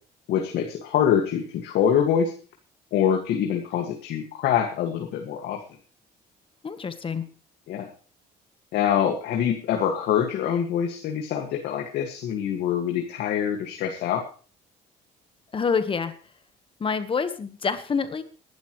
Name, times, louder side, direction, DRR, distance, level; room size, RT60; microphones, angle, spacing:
voice 1, 0.3-2.3 2.9-5.6 7.7-7.9 8.7-14.2, left 9 dB, 75° left, 3 dB, 2.0 m, -25 dB
voice 2, 6.6-7.2 15.5-16.1 16.8-18.2, left 5 dB, 30° left, 11 dB, 1.3 m, -27 dB
19.5 x 12.0 x 3.2 m, 0.38 s
cardioid pair, 110°, 17 cm